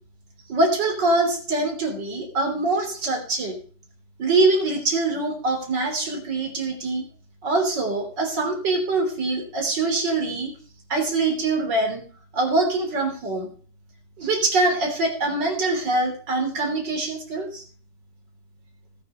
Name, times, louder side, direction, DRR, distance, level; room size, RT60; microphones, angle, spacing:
voice 1, 0.5-3.6 4.2-7.0 7.4-10.5 10.9-12.0 12.3-13.5 14.2-17.6, right 2 dB, 80° right, 3 dB, 3.9 m, -24 dB
18.5 x 6.9 x 5.6 m, 0.42 s
omnidirectional pair, 1.9 m